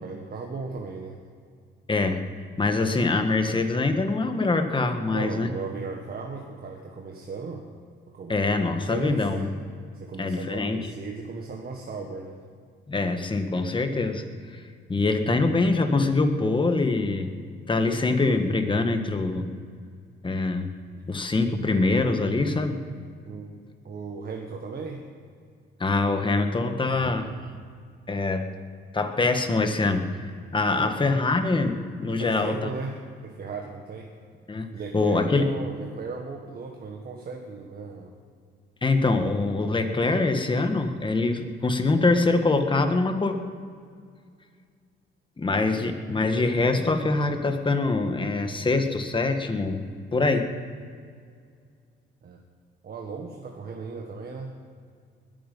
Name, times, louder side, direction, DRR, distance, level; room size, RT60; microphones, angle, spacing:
voice 1, 0.0-1.2 5.1-7.6 8.1-9.5 9.9-12.4 23.2-23.5 23.8-25.0 30.7-30.9 32.1-33.0 33.2-34.1 34.7-38.1 52.2-52.4 52.8-54.5, right 4 dB, 50° right, 1 dB, 1.6 m, -36 dB
voice 2, 1.9-2.3 2.6-5.5 8.3-9.5 10.2-10.9 12.9-14.2 14.5-14.6 14.9-17.3 17.7-19.5 20.2-20.7 21.1-22.8 25.8-27.3 28.1-28.5 28.9-32.7 34.5-35.5 38.8-43.3 45.4-49.8 50.1-50.5, left 3 dB, 25° left, 7 dB, 1.6 m, -24 dB
20.5 x 9.3 x 5.5 m, 2.1 s
cardioid pair, 90°, 20 cm